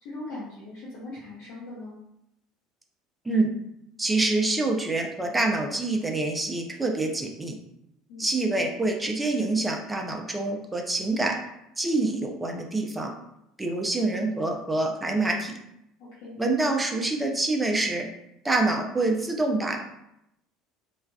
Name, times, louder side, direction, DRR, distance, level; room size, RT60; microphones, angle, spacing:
voice 1, 0.0-2.0 8.1-8.3 16.0-16.3, left 2 dB, 65° left, -7 dB, 0.8 m, -40 dB
voice 2, 4.0-7.5 8.2-11.4 11.8-13.1 13.6-15.6 16.4-18.1 18.4-19.8, right 2 dB, 15° right, 2 dB, 0.5 m, -26 dB
3.2 x 2.3 x 2.2 m, 0.82 s
hypercardioid pair, 70°, 0 cm